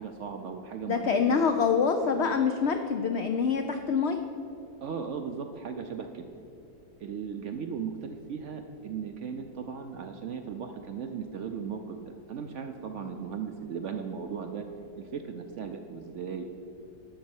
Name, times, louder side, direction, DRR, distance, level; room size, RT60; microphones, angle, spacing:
voice 1, 0.0-1.5 4.8-6.3 7.0-14.6 15.0-16.4, right 6 dB, 65° right, 6 dB, 0.7 m, -37 dB
voice 2, 0.9-4.2 13.0-13.2, left 6 dB, 80° left, 6 dB, 0.6 m, -26 dB
11.5 x 4.2 x 7.8 m, 2.8 s
omnidirectional pair, 1.8 m